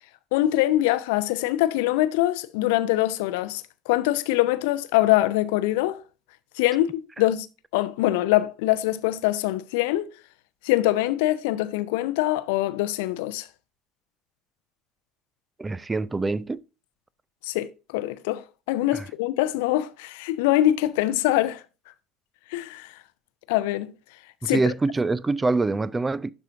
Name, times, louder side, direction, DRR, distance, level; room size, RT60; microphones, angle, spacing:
voice 1, 0.3-6.0 6.6-7.5 7.7-10.1 10.6-13.4 17.4-18.4 18.7-21.6 22.5-22.9 23.5-23.9 24.5-24.6, left 15 dB, 60° left, 0.5 m, -23 dB
voice 2, 15.6-16.6 18.9-19.1 24.4-26.3, right 3 dB, 15° right, 0.4 m, -25 dB
11.5 x 4.3 x 2.6 m
figure-of-eight pair, 65°, 0 cm